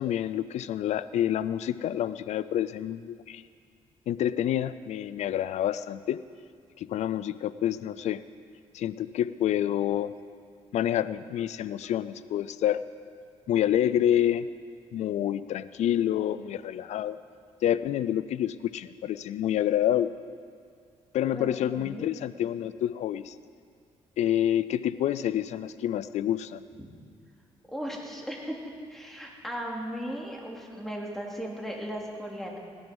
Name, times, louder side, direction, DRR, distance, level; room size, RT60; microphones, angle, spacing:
voice 1, 0.0-3.4 4.1-6.2 6.8-8.2 8.7-10.1 10.7-12.8 13.5-14.5 14.9-17.2 17.6-20.1 21.1-23.4 24.2-26.6, left 11 dB, 75° left, 15 dB, 0.4 m, -28 dB
voice 2, 21.7-22.1 26.8-26.9 27.7-28.5 28.9-32.6, equal, 5° left, -2 dB, 3.0 m, -36 dB
18.0 x 11.0 x 5.4 m, 2.2 s
cardioid pair, 80°, 12 cm